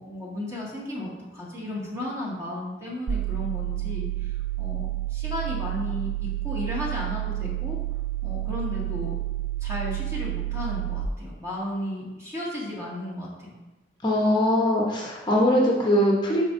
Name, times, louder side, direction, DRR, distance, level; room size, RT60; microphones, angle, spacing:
voice 1, 0.0-7.8 8.2-9.1 9.6-13.6, left 1 dB, 15° right, -6 dB, 1.9 m, -34 dB
sound 1, 3.1-11.1, right 15 dB, 70° right, 0.3 m, -30 dB
voice 2, 14.0-16.4, left 1 dB, 25° left, -4 dB, 0.9 m, -21 dB
12.0 x 4.4 x 2.6 m, 1.1 s
head